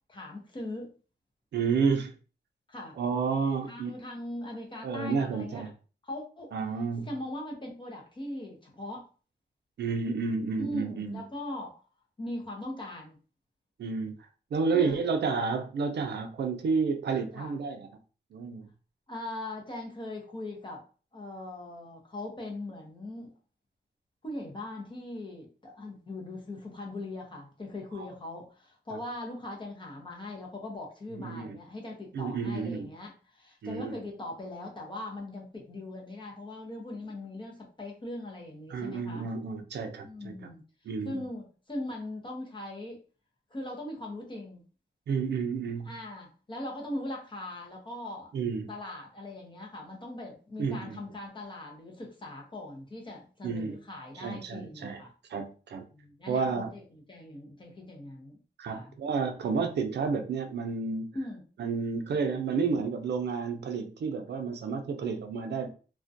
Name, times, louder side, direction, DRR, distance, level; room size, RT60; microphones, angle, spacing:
voice 1, 0.1-0.9 2.7-2.9 3.7-5.6 6.0-6.6 7.0-9.1 10.6-11.8 12.2-13.2 14.7-15.0 17.3-17.5 19.1-20.8 21.1-23.3 24.2-39.3 40.0-40.6 41.0-43.0 43.5-44.6 45.8-48.3 48.6-55.1 55.9-58.4 58.7-58.9 61.1-61.5, left 1 dB, 25° left, 0.6 m, -40 dB
voice 2, 1.5-2.1 3.0-3.9 4.8-5.7 6.5-7.1 9.8-11.2 13.8-14.1 14.5-17.9 18.3-18.7 28.0-28.1 28.9-29.0 31.2-31.5 32.1-32.9 33.6-34.0 38.7-40.3 40.9-41.2 45.1-45.9 48.3-48.7 50.6-51.0 53.4-53.8 54.2-55.0 55.3-55.8 56.3-56.7 58.6-61.1 61.6-65.7, right 5 dB, 65° right, 0.4 m, -30 dB
2.3 x 2.1 x 2.6 m
wide cardioid pair, 160°, 19 cm